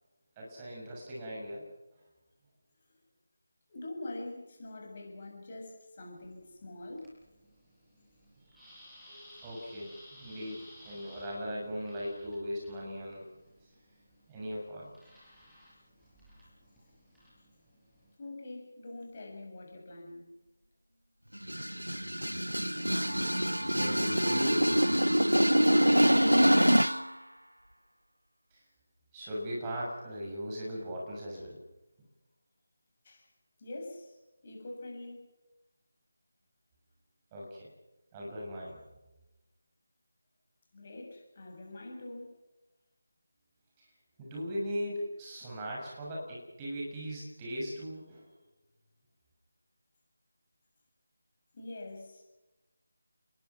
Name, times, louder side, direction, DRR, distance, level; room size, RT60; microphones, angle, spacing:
voice 1, 0.4-1.6 8.5-8.8 9.0-13.3 14.3-14.9 23.6-24.8 28.5-28.6 29.1-31.6 37.3-37.7 38.1-38.8 43.8-43.9 44.2-48.3, equal, 15° right, -4 dB, 6.6 m, -39 dB
voice 2, 3.7-7.1 18.2-20.3 33.0-33.3 33.6-35.3 40.7-42.4 51.5-52.2, left 2 dB, 30° left, 1 dB, 7.1 m, -44 dB
sound 1, 6.2-18.1, equal, ahead, 6.1 m, -57 dB
sound 2, 21.4-27.1, equal, 85° right, 0.7 m, -25 dB
29.5 x 22.5 x 6.0 m, 1.0 s
figure-of-eight pair, 160°, 0 cm